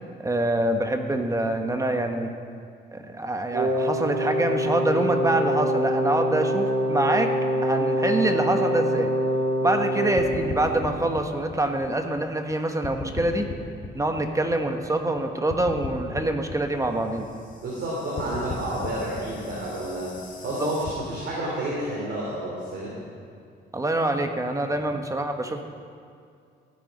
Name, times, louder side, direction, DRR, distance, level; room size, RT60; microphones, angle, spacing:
voice 1, 0.2-2.3 2.9-7.3 7.6-9.1 9.6-13.5 13.9-17.3 20.6-20.7 23.7-25.6, right 1 dB, 15° right, 5 dB, 1.2 m, -25 dB
Wind instrument woodwind instrument, 3.5-10.8, equal, 80° right, 1.8 m, -25 dB
sound 1, 10.2-12.5 12.8-15.2 15.5-20.9, left 4 dB, 40° left, 1.8 m, -37 dB
voice 2, 17.6-23.0, right 1 dB, 60° right, -5 dB, 3.3 m, -30 dB
15.5 x 9.3 x 5.3 m, 2.4 s
cardioid pair, 90°, 20 cm